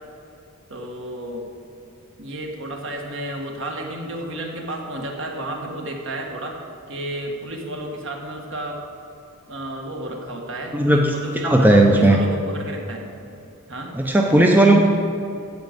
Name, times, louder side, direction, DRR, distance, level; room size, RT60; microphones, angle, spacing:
voice 1, 0.7-1.5 2.2-6.6 6.9-8.8 9.5-13.1 13.7-13.9, right 1 dB, 55° right, 1 dB, 1.6 m, -32 dB
voice 2, 10.7-11.1 11.4-12.2 14.0-14.8, right 1 dB, 10° right, 1 dB, 0.6 m, -15 dB
15.0 x 5.1 x 8.0 m, 2.7 s
head